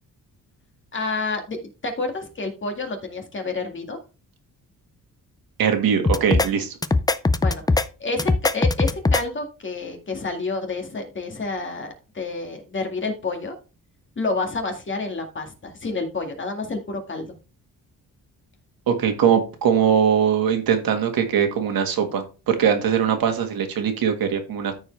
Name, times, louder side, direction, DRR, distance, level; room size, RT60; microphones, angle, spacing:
voice 1, 0.9-1.6 1.8-4.0 7.4-7.6 8.0-13.5 14.2-17.3, left 3 dB, 35° left, 4 dB, 2.0 m, -29 dB
voice 2, 5.6-6.7 18.9-24.7, right 8 dB, 85° right, 5 dB, 1.7 m, -21 dB
sound 1, 6.1-6.5 6.8-7.9 8.2-9.2, left 3 dB, 10° left, 0.4 m, -20 dB
13.5 x 4.7 x 3.3 m, 0.33 s
wide cardioid pair, 135°, 34 cm